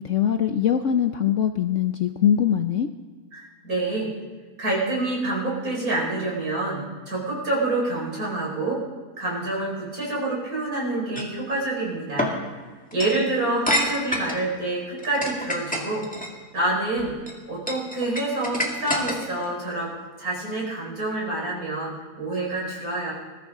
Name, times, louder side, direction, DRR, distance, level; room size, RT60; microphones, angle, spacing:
voice 1, 0.0-2.9, left 9 dB, 60° left, 7 dB, 0.8 m, -22 dB
voice 2, 3.3-4.1 4.6-8.8 9.2-12.3 12.9-16.0 16.5-17.1 17.5-19.9 20.2-23.1, right 2 dB, 60° right, -3 dB, 5.5 m, -27 dB
sound 1, 11.2-11.4 12.2-12.4 12.9-13.2 13.7-14.4 15.0-16.3 17.0-17.3 17.7-19.4, equal, 5° left, 2.0 m, -27 dB
21.0 x 14.0 x 3.7 m, 1.4 s
omnidirectional pair, 1.8 m